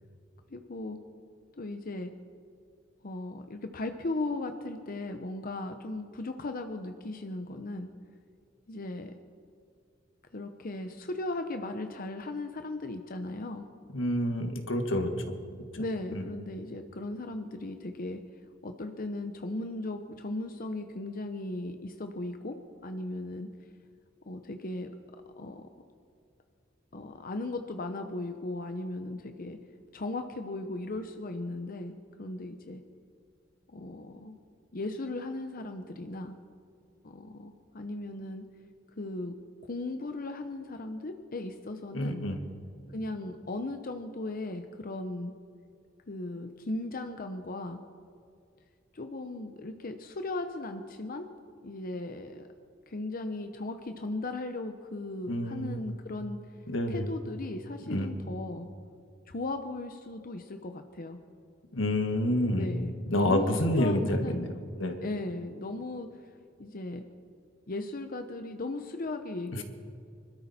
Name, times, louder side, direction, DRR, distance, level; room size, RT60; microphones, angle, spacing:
voice 1, 0.5-1.0 1.6-2.1 3.0-7.9 8.7-9.1 10.3-13.7 15.8-18.2 18.6-23.5 24.3-24.9 25.4-25.7 26.9-29.6 29.9-32.8 33.7-34.4 34.7-36.4 37.0-38.4 39.0-39.4 39.6-42.2 42.9-45.3 46.1-47.8 48.9-51.3 51.6-52.5 52.9-56.4 56.9-58.7 59.3-61.2 62.5-64.5 65.0-66.1 66.6-67.0 67.7-69.6, left 2 dB, 50° left, 7 dB, 0.8 m, -37 dB
voice 2, 13.9-15.1 16.1-16.2 41.9-42.4 55.3-55.8 56.7-57.1 57.9-58.1 61.7-62.7 63.1-64.5 64.8-65.0 69.5-69.6, left 1 dB, 85° left, 6 dB, 1.6 m, -28 dB
25.0 x 13.0 x 4.2 m, 2.3 s
head